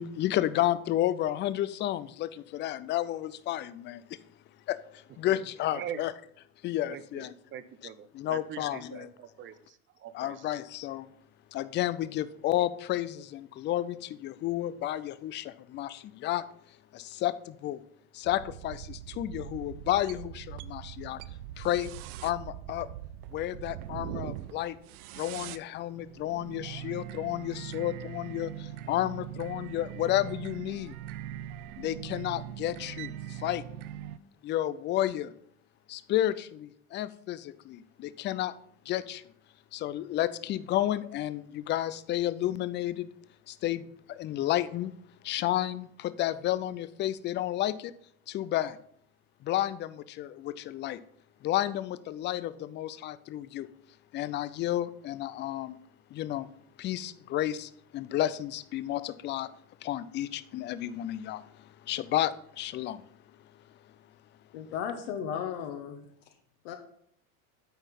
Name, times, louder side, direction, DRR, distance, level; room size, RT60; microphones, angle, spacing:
voice 1, 0.0-4.0 4.7-6.1 6.6-7.3 8.1-9.1 10.1-11.1 11.5-16.4 16.9-17.8 18.1-21.2 21.6-21.9 22.2-22.9 23.3-24.8 25.2-30.9 31.8-33.6 34.4-35.3 35.9-38.5 38.9-39.2 39.7-43.1 43.5-44.9 45.2-47.9 48.3-48.8 49.4-51.0 51.4-53.7 54.1-55.8 56.1-56.5 56.8-59.5 59.8-63.0, left 13 dB, 25° left, 0.4 m, -31 dB
voice 2, 6.9-10.5, right 9 dB, 30° right, 0.5 m, -43 dB
sound 1, 18.2-34.2, right 12 dB, 85° right, 0.6 m, -42 dB
voice 3, 64.5-66.0 66.6-66.7, left 8 dB, 65° left, 1.2 m, -35 dB
9.1 x 4.5 x 5.2 m
supercardioid pair, 105°, 43 cm